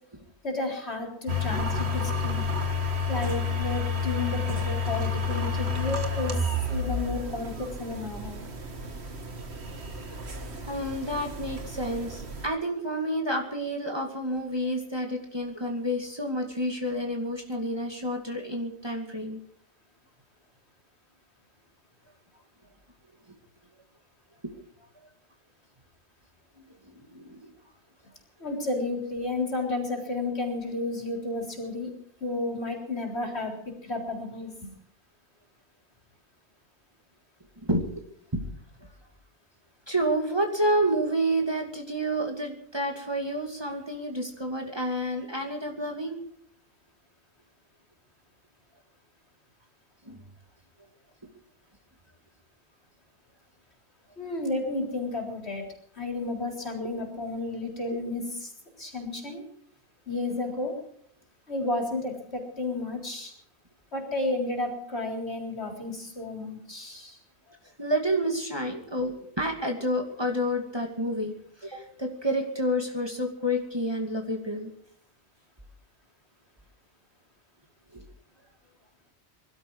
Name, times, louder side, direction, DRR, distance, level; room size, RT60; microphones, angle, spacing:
voice 1, 0.4-2.5 3.1-6.4 6.7-8.5 28.4-31.9 32.2-34.7 54.2-55.6 56.0-58.5 58.8-59.4 60.1-60.7 61.5-63.3 63.9-67.2, left 2 dB, 65° left, 1 dB, 4.2 m, -32 dB
sound 1, 1.3-12.5, left 3 dB, 65° right, 1.9 m, -30 dB
voice 2, 10.6-19.4 26.9-27.5 37.7-37.8 38.3-38.4 39.9-46.2 50.0-50.2 67.8-71.3 71.6-74.7 77.9-78.0, equal, 20° right, 1 dB, 2.4 m, -29 dB
22.5 x 12.5 x 4.8 m, 0.65 s
omnidirectional pair, 1.2 m